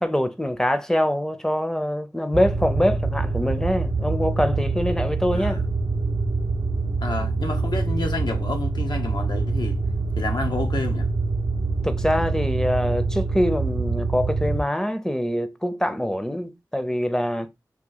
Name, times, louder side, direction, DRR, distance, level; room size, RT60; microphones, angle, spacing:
voice 1, 0.0-5.6 11.8-17.5, equal, 5° left, 0.5 m, -24 dB
sound 1, 2.3-14.6, right 3 dB, 60° right, 0.4 m, -25 dB
voice 2, 5.3-5.7 7.0-9.8 10.2-11.1, left 3 dB, 85° left, 0.7 m, -30 dB
2.9 x 2.6 x 3.8 m
wide cardioid pair, 70°, 7 cm